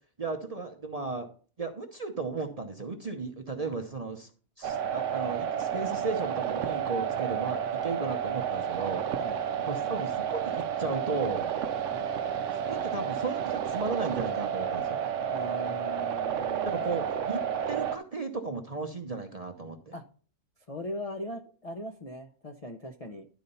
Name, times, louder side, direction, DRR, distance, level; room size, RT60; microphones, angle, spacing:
voice 1, 0.2-1.3 1.6-4.3 4.6-9.2 9.7-11.5 12.7-15.0 16.6-17.4 17.7-19.9, right 3 dB, 35° right, 4 dB, 0.7 m, -35 dB
sound 1, 4.6-18.0, right 8 dB, 65° right, 0.9 m, -31 dB
voice 2, 15.3-17.0 19.9-20.0 20.7-23.3, equal, 40° left, 4 dB, 0.5 m, -40 dB
11.5 x 4.0 x 5.4 m, 0.40 s
omnidirectional pair, 1.6 m